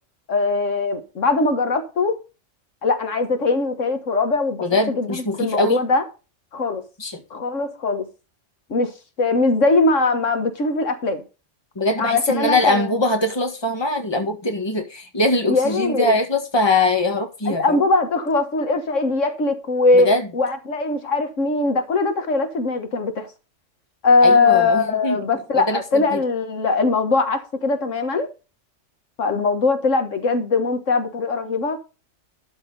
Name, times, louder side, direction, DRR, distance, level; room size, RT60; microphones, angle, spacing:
voice 1, 0.3-2.2 2.8-6.1 6.5-6.8 7.3-8.1 8.7-8.9 9.2-11.2 12.0-12.9 15.5-16.1 17.5-23.3 24.0-28.3 29.2-31.8, left 3 dB, 75° left, 1.8 m, -21 dB
voice 2, 4.6-5.8 7.0-7.2 11.8-17.8 19.9-20.3 24.2-25.2 25.5-26.2, left 2 dB, 20° left, 1.7 m, -22 dB
12.5 x 4.7 x 5.4 m
omnidirectional pair, 1.3 m